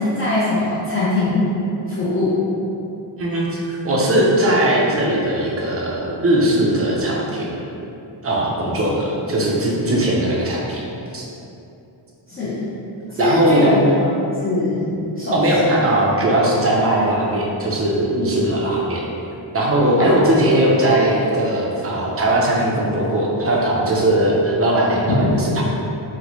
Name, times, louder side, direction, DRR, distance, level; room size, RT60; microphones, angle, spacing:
voice 1, 0.0-1.5 1.9-2.5 12.3-12.6 13.1-14.1 14.4-14.9 15.2-15.5 20.0-20.3 25.1-25.2, left 2 dB, 30° left, -12 dB, 0.6 m, -21 dB
voice 2, 3.2-7.6 8.2-10.8 11.1-11.2 13.1-13.7 15.3-19.0 19.5-25.6, right 1 dB, 30° right, -3 dB, 0.5 m, -19 dB
3.9 x 2.1 x 3.0 m, 2.8 s
wide cardioid pair, 140°, 47 cm